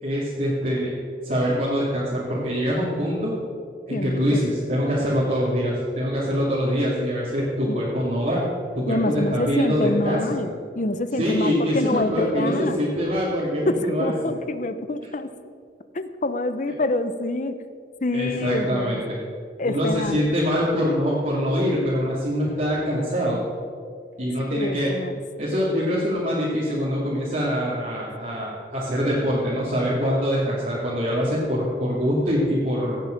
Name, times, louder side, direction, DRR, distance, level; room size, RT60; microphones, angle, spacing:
voice 1, 0.0-0.9 1.2-3.3 3.9-8.4 8.7-10.4 11.2-14.1 18.1-19.2 19.6-23.4 24.2-24.9 25.4-33.0, equal, 45° right, -7 dB, 2.4 m, -24 dB
voice 2, 3.9-4.5 7.7-7.9 8.9-12.9 13.7-15.3 15.9-17.7 18.0-19.0 19.6-20.2 24.5-25.2, left 2 dB, 45° left, 11 dB, 0.7 m, -26 dB
16.5 x 9.1 x 5.2 m, 2.3 s
head